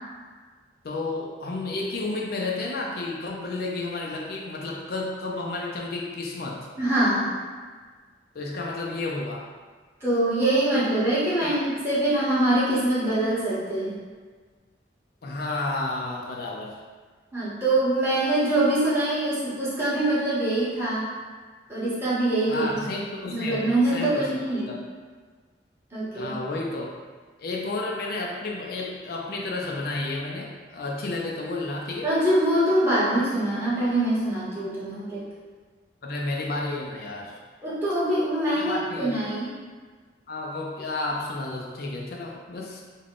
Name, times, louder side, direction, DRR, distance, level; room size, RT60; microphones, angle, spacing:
voice 1, 0.8-6.7 8.3-9.5 11.4-11.6 15.2-16.8 22.5-24.3 24.7-24.8 26.1-26.9 27.4-32.1 36.0-37.4 38.5-39.2 40.3-42.8, left 2 dB, 60° left, -1 dB, 0.4 m, -31 dB
voice 2, 6.8-7.3 10.0-14.0 17.3-21.0 21.7-22.8 23.3-24.7 25.9-26.3 32.0-35.3 37.6-39.5, right 1 dB, 15° right, -10 dB, 1.1 m, -24 dB
3.5 x 2.2 x 3.7 m, 1.5 s
head